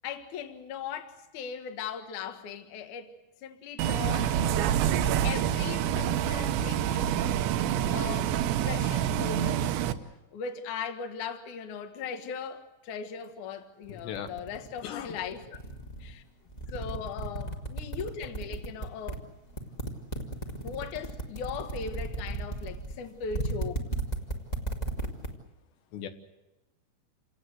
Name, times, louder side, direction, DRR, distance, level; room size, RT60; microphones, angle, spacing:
voice 1, 0.0-3.1 3.4-4.4 5.2-7.5 7.9-8.4 8.6-9.7 10.3-15.6 16.0-16.2 16.7-19.3 20.6-23.8, left 6 dB, 55° left, 2.7 m, -39 dB
Bus, 3.8-9.9, right 10 dB, 90° right, 3.3 m, -27 dB
voice 2, 13.9-14.3 14.8-15.2 25.9-26.1, left 9 dB, 80° left, 3.5 m, -37 dB
sound 1, 13.9-16.1 16.5-19.1 19.5-25.3, right 2 dB, 20° left, 1.1 m, -34 dB
28.5 x 18.5 x 8.0 m
omnidirectional pair, 5.0 m